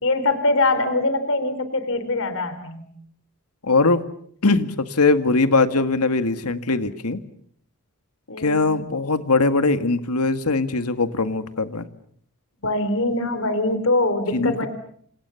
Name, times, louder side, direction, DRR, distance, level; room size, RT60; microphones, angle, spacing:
voice 1, 0.0-2.9 8.3-8.7 12.6-14.7, left 2 dB, 65° left, 11 dB, 3.9 m, -23 dB
voice 2, 3.6-4.0 4.4-7.2 8.4-11.9 14.3-14.7, left 3 dB, 80° left, 10 dB, 1.9 m, -21 dB
29.5 x 27.0 x 7.1 m, 0.66 s
head